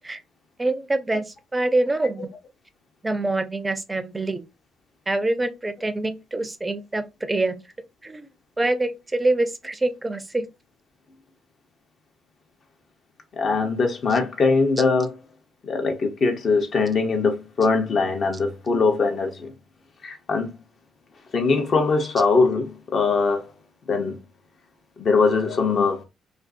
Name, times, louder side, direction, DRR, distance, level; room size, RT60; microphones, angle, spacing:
voice 1, 0.6-2.3 3.0-4.4 5.1-7.6 8.0-8.3 8.6-10.5 14.1-14.2, right 2 dB, 15° right, 0.4 m, -25 dB
voice 2, 13.4-15.1 15.7-19.5 20.0-20.5 21.3-23.4 23.9-24.2 25.0-26.0, left 4 dB, 50° left, 0.7 m, -21 dB
2.5 x 2.3 x 2.5 m
cardioid pair, 90°, 0 cm